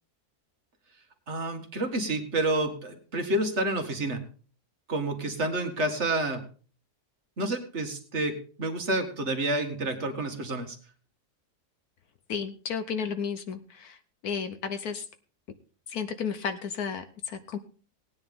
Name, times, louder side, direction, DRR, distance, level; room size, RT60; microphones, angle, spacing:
voice 1, 1.3-4.2 4.9-6.4 7.4-10.8, right 1 dB, 45° right, 6 dB, 2.0 m, -29 dB
voice 2, 12.3-15.1 15.9-17.6, left 6 dB, 75° left, 9 dB, 1.4 m, -33 dB
18.0 x 9.7 x 3.7 m, 0.39 s
omnidirectional pair, 1.6 m